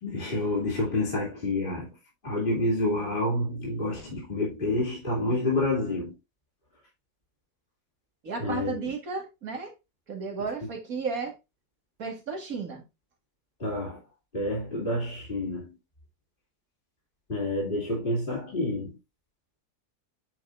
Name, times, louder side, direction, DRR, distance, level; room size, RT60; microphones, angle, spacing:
voice 1, 0.0-1.9 2.2-6.1 8.4-8.7 13.6-14.0 14.3-15.8 17.3-19.0, left 1 dB, 35° left, 3.0 m, -28 dB
voice 2, 8.2-9.7 10.1-11.3 12.0-12.8, right 4 dB, 65° right, 2.3 m, -33 dB
9.3 x 5.4 x 2.5 m
omnidirectional pair, 1.6 m